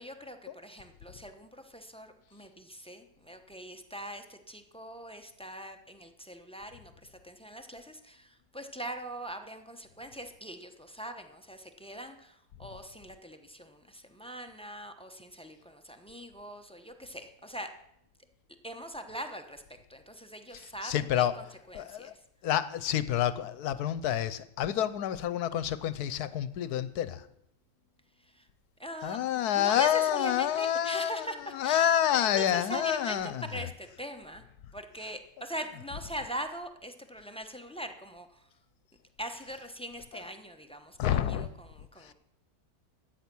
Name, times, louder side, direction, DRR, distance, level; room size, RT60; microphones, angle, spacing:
voice 1, 0.0-17.7 18.6-19.6 19.9-22.1 28.3-28.5 28.8-31.4 31.6-32.0 32.2-34.4 34.7-38.4 39.2-42.1, right 1 dB, 5° left, 6 dB, 0.6 m, -42 dB
voice 2, 20.5-21.3 21.7-22.1 22.4-27.3 29.0-31.3 31.5-33.7 41.0-41.5 42.0-42.1, left 10 dB, 80° left, 15 dB, 1.2 m, -28 dB
14.0 x 8.6 x 6.1 m, 0.77 s
omnidirectional pair, 1.7 m